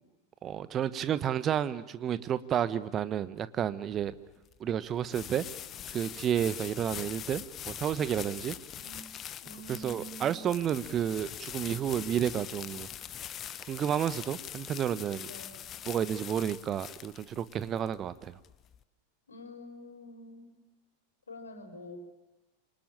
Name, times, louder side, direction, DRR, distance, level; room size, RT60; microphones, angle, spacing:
voice 1, 0.4-4.1 4.6-5.4 5.9-8.6 9.7-12.9 13.7-15.3 15.9-18.4, right 9 dB, 30° right, 14 dB, 1.2 m, -31 dB
sound 1, 3.9-18.8, left 10 dB, 30° left, 1.0 m, -43 dB
voice 2, 8.7-9.1 9.4-10.4 15.3-15.7 19.3-20.5 21.3-22.0, equal, 75° left, 6 dB, 4.6 m, -47 dB
27.0 x 25.0 x 8.9 m, 1.1 s
figure-of-eight pair, 90°, 0 cm